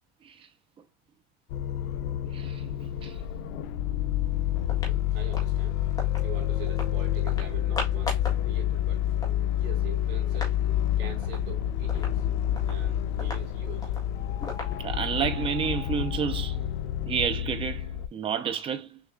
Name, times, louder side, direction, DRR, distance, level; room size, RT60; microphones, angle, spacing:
sound 1, 1.5-18.1, left 11 dB, 80° left, 0.7 m, -28 dB
voice 1, 2.3-2.6 3.0-3.1 14.8-16.6 17.1-19.0, right 7 dB, 15° right, 0.6 m, -30 dB
sound 2, 3.4-13.6 14.1-16.9, left 8 dB, 40° left, 1.5 m, -48 dB
sound 3, 4.2-4.3 4.6-6.3 6.7-6.9 7.3-8.4 8.8-8.9 9.0-10.6 10.9-11.0 11.2-11.5 11.9-15.2, left 2 dB, 10° left, 1.6 m, -39 dB
voice 2, 4.8-5.8 6.1-9.1 9.5-10.5 11.0-12.3 12.6-13.9, right 7 dB, 70° right, 3.4 m, -43 dB
6.6 x 3.0 x 2.4 m
cardioid pair, 180°, 31 cm